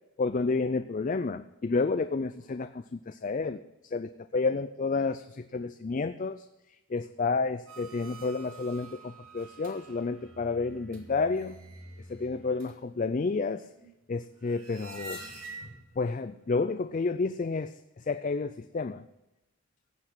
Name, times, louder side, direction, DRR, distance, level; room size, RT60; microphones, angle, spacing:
voice 1, 0.2-6.4 6.9-11.6 12.1-13.7 14.1-15.2 16.0-19.0, left 4 dB, 35° left, 11 dB, 0.4 m, -30 dB
sound 1, 7.7-16.0 16.4-16.5, right 2 dB, 65° right, 3.0 m, -48 dB
16.5 x 8.0 x 6.2 m, 0.94 s
head